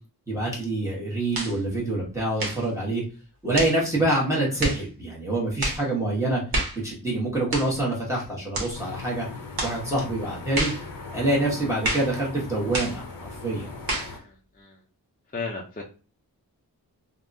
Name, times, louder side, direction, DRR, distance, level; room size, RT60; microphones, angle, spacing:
voice 1, 0.3-3.0 3.4-6.4 6.8-9.3 9.6-10.7 11.1-13.0 13.4-13.7, right 2 dB, 10° right, -5 dB, 0.9 m, -26 dB
sound 1, 1.3-1.6 2.4-2.7 3.5-3.8 4.6-4.8 5.6-5.8 6.5-6.8 7.5-7.8 8.5-8.8 9.6-9.8 10.5-10.8 11.8-12.1 12.7-13.0 13.9-14.1, right 1 dB, 70° right, 0.9 m, -28 dB
sound 2, 8.7-14.2, left 3 dB, 60° left, 0.7 m, -39 dB
voice 2, 14.0-14.8 15.3-15.8, left 4 dB, 25° left, -2 dB, 0.5 m, -35 dB
3.4 x 2.1 x 2.6 m, 0.35 s
wide cardioid pair, 130°, 38 cm